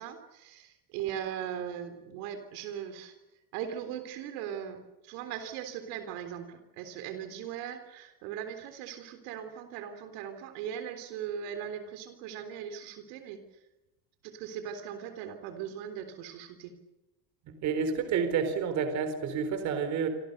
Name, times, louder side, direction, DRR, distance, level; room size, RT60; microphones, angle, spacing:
voice 1, 0.0-3.1 3.5-13.4 14.2-16.7, right 9 dB, 60° right, 8 dB, 3.8 m, -39 dB
voice 2, 17.5-20.1, right 6 dB, 35° right, 9 dB, 4.1 m, -29 dB
29.0 x 26.0 x 6.8 m, 0.97 s
cardioid pair, 180°, 46 cm